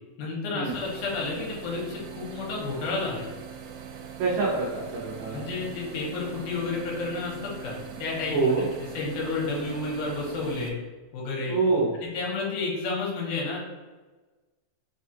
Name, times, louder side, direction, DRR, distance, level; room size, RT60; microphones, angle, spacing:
voice 1, 0.2-3.3 5.3-8.5 8.9-10.8 11.1-11.6 12.0-13.6, left 3 dB, 75° left, -3 dB, 2.3 m, -31 dB
sound 1, 0.7-10.7, right 7 dB, 90° right, 2.2 m, -42 dB
voice 2, 4.2-5.4 8.3-8.6 11.5-11.9, right 4 dB, 75° right, -6 dB, 1.9 m, -25 dB
5.1 x 2.3 x 2.7 m, 1.3 s
omnidirectional pair, 3.8 m